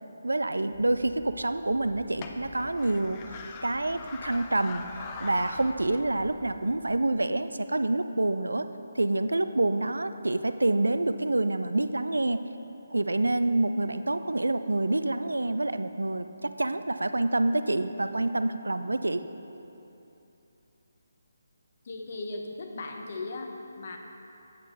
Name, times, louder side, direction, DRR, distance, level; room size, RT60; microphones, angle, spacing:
voice 1, 0.2-8.7 9.0-12.4 12.9-19.2, right 2 dB, 85° right, 11 dB, 0.4 m, -27 dB
sound 1, 0.7-7.0, left 4 dB, 25° left, 0.5 m, -44 dB
voice 2, 21.8-24.0, left 2 dB, 50° left, 3 dB, 0.9 m, -37 dB
8.3 x 5.1 x 5.5 m, 2.9 s
figure-of-eight pair, 150°, 0 cm